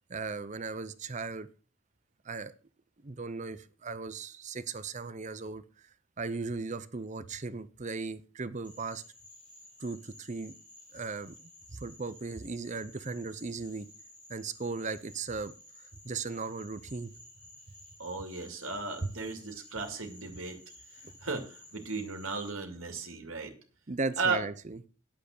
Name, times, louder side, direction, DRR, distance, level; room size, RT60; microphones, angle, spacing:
voice 1, 0.1-1.5 2.2-2.5 3.0-5.9 6.2-9.0 9.8-10.5 10.9-13.9 14.3-15.5 16.0-17.1 19.0-19.1 21.0-21.1 23.9-24.8, right 4 dB, 35° right, 13 dB, 0.7 m, -37 dB
Frog, 8.6-22.5, left 1 dB, 5° left, 4.8 m, -54 dB
voice 2, 18.0-20.6 21.2-23.5 24.2-24.4, right 4 dB, 80° right, 4 dB, 2.4 m, -35 dB
9.2 x 7.7 x 6.6 m, 0.38 s
head